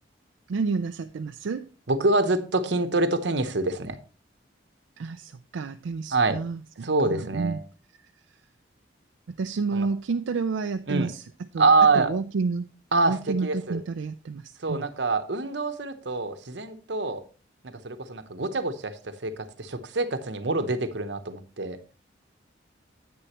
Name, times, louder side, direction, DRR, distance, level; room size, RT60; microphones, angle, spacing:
voice 1, 0.5-1.7 5.0-7.6 9.4-11.7 11.9-12.7 13.0-14.9, right 4 dB, 90° right, 0.4 m, -30 dB
voice 2, 1.9-4.0 6.1-6.4 6.8-7.6 9.7-9.9 10.9-11.1 11.6-12.1 12.9-13.8 14.6-17.2 17.8-21.8, right 3 dB, 70° right, 0.9 m, -25 dB
9.8 x 8.8 x 3.0 m
head